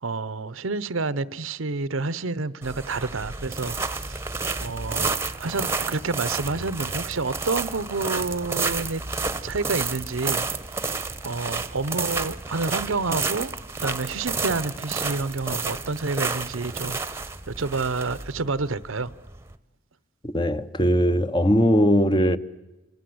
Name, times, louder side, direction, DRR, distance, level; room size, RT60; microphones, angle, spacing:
voice 1, 0.0-3.8 4.0-4.2 4.6-9.0 9.4-10.4 11.2-13.5 13.8-17.0 17.5-19.1, right 3 dB, 85° right, 0.9 m, -29 dB
sound 1, 2.6-19.5, right 4 dB, 15° right, 0.9 m, -30 dB
voice 2, 20.2-22.4, equal, 25° left, 0.9 m, -20 dB
26.5 x 25.5 x 7.9 m
head